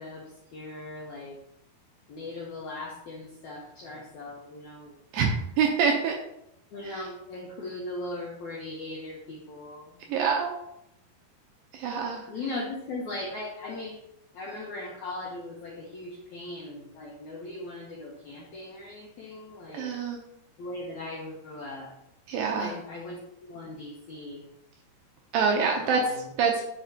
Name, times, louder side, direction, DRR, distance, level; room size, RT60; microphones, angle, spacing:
voice 1, 0.0-1.4 2.1-5.2 6.7-10.0 12.3-14.0 14.3-19.9 20.6-21.9 22.5-24.5 25.7-26.3, left 2 dB, 80° left, -3 dB, 1.7 m, -39 dB
voice 2, 5.6-6.2 6.8-7.0 10.1-10.5 11.7-12.2 19.7-20.2 22.3-22.7 25.3-26.1 26.4-26.6, right 6 dB, 80° right, 1 dB, 2.1 m, -25 dB
10.0 x 5.1 x 2.8 m, 0.81 s
omnidirectional pair, 4.7 m